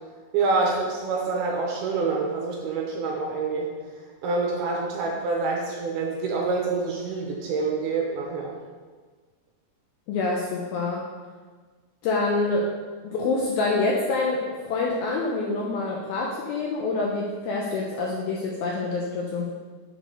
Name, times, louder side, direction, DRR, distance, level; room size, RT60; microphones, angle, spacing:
voice 1, 0.3-3.7 4.2-8.5, right 4 dB, 80° right, -1 dB, 2.5 m, -26 dB
voice 2, 10.1-11.1 12.0-12.7 13.0-19.5, left 3 dB, 85° left, -2 dB, 2.1 m, -26 dB
6.9 x 6.3 x 3.8 m, 1.4 s
omnidirectional pair, 5.1 m